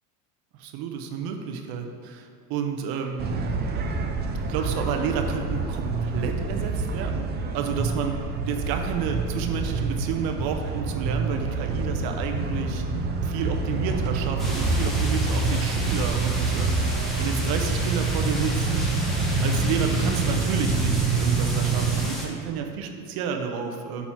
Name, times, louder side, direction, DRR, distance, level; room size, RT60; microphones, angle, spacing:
voice 1, 0.6-3.3 4.5-7.3 7.5-8.2 8.4-12.8 13.2-16.8 17.2-18.8 19.4-24.1, right 6 dB, 50° right, 4 dB, 1.0 m, -30 dB
sound 1, 3.2-22.1, right 3 dB, 20° right, 0.5 m, -26 dB
sound 2, 14.4-22.2, equal, ahead, 1.3 m, -34 dB
7.1 x 4.2 x 5.9 m, 2.3 s
supercardioid pair, 110°, 48 cm